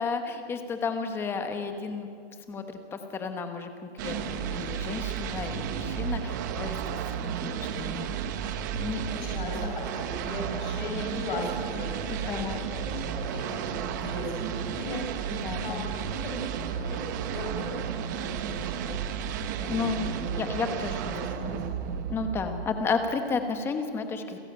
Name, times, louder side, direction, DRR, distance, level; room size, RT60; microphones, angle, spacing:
voice 1, 0.0-2.1 2.5-8.1 8.8-9.0 9.5-9.7 12.1-12.7 15.3-15.9 19.7-21.7 22.1-24.4, left 4 dB, 5° left, 7 dB, 1.1 m, -33 dB
sound 1, 4.0-23.0, right 8 dB, 20° right, 0.7 m, -33 dB
voice 2, 8.8-16.3 16.6-19.0 19.6-20.7 21.1-21.6, left 2 dB, 50° left, 0 dB, 5.7 m, -38 dB
29.5 x 15.5 x 8.9 m, 2.3 s
hypercardioid pair, 170°, 32 cm